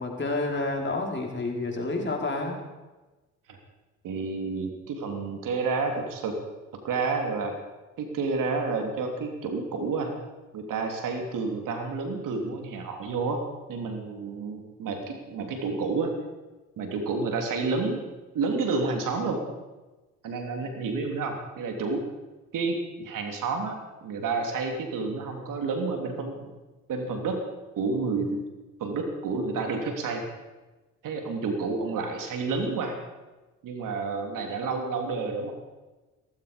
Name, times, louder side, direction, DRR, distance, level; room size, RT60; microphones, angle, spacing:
voice 1, 0.0-2.6, left 2 dB, 35° left, 1 dB, 4.7 m, -29 dB
voice 2, 4.0-6.4 6.8-7.5 8.0-10.2 10.5-13.4 13.7-16.1 16.8-18.0 18.3-19.4 20.2-22.0 22.5-26.6 26.9-27.4 27.8-28.4 28.8-30.2 31.0-33.0 33.6-35.5, right 4 dB, 70° right, 4 dB, 3.2 m, -30 dB
17.5 x 15.5 x 5.2 m, 1.2 s
supercardioid pair, 60°, 33 cm